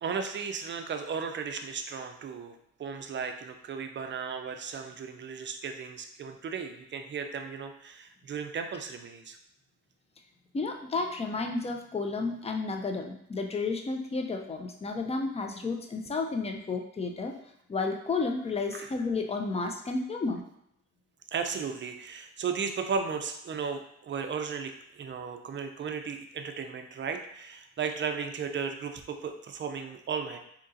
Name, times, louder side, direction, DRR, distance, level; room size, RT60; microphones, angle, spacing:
voice 1, 0.0-9.4 18.7-18.9 21.3-30.4, right 6 dB, 40° right, 6 dB, 0.4 m, -35 dB
voice 2, 10.5-17.3 17.7-20.4, left 3 dB, 20° left, 4 dB, 0.5 m, -32 dB
3.7 x 2.9 x 2.6 m, 0.74 s
cardioid pair, 90°, 30 cm